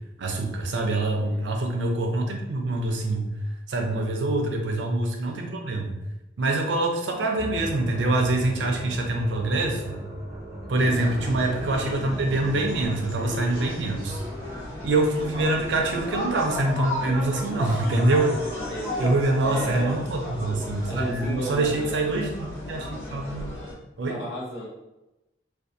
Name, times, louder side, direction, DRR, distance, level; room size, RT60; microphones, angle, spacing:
voice 1, 0.2-3.3 3.7-6.0 6.4-10.0 10.7-14.2 14.8-18.3 19.0-23.5 24.0-24.2, right 2 dB, 85° right, 3 dB, 0.5 m, -25 dB
sound 1, 7.4-13.0, right 1 dB, 15° right, 0.5 m, -37 dB
sound 2, 10.8-23.7, left 1 dB, 15° left, 0.8 m, -34 dB
voice 2, 18.6-20.0 20.8-22.0 24.1-24.7, equal, 70° left, -4 dB, 0.9 m, -35 dB
2.5 x 2.3 x 2.5 m, 0.95 s
head